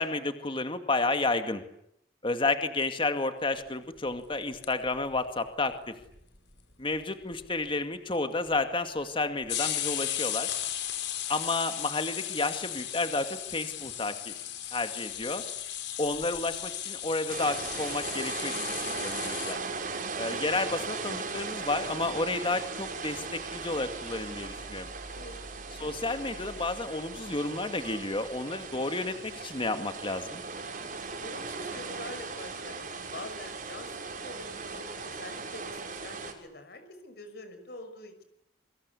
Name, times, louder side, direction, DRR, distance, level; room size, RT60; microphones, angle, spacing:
voice 1, 0.0-1.6 2.2-6.0 6.8-10.5 11.3-14.3 14.7-15.4 16.0-19.6 20.2-24.9 25.8-30.4, left 3 dB, 30° left, 8 dB, 2.3 m, -31 dB
sound 1, 4.3-5.2 5.5-5.6 5.7-5.8 6.0-6.6 6.9-7.0 7.3-7.6 8.5-8.6 9.4-19.5, left 11 dB, 80° left, 5.1 m, -35 dB
sound 2, 17.3-36.3, right 4 dB, 50° right, 5.7 m, -38 dB
voice 2, 31.2-38.1, left 2 dB, 60° left, 8 dB, 5.9 m, -45 dB
28.0 x 24.0 x 8.5 m, 0.73 s
head